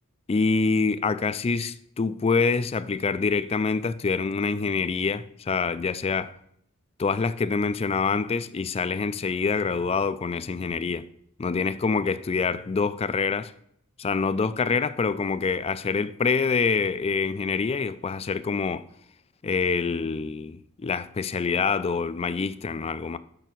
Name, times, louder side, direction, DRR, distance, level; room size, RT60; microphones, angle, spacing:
voice 1, 0.3-6.3 7.0-11.1 11.4-13.5 14.0-18.8 19.4-23.2, left 4 dB, 30° left, 0.3 m, -26 dB
6.9 x 6.0 x 6.0 m
head